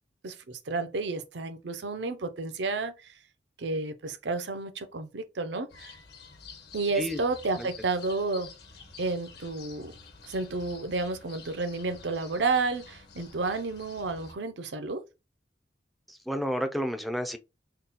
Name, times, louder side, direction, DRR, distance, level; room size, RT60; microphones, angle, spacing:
voice 1, 0.2-2.9 3.6-5.9 6.7-8.5 9.0-9.9 10.3-15.0, right 3 dB, 80° right, 0.6 m, -31 dB
sound 1, 5.7-14.3, left 5 dB, 65° left, 1.1 m, -49 dB
voice 2, 16.1-17.4, equal, ahead, 0.4 m, -31 dB
3.8 x 2.2 x 4.0 m
head